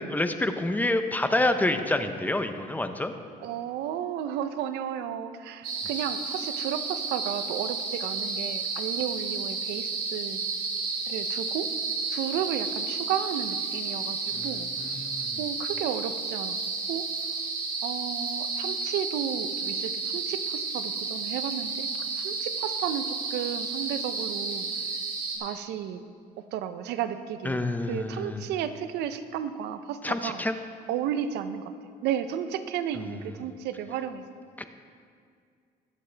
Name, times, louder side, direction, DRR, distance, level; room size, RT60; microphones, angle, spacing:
voice 1, 0.0-3.1 14.3-15.4 27.4-28.4 30.0-30.6 34.6-34.7, left 2 dB, 10° left, 8 dB, 0.7 m, -28 dB
voice 2, 3.4-10.4 11.1-11.7 12.1-14.7 15.4-16.6 16.9-17.1 17.8-24.7 25.3-26.0 26.4-30.4 30.9-31.7 32.0-34.2, right 9 dB, 85° right, 11 dB, 0.6 m, -33 dB
sound 1, 5.6-25.4, right 4 dB, 60° right, 2.7 m, -32 dB
21.5 x 7.6 x 3.4 m, 2.2 s
cardioid pair, 110°, 17 cm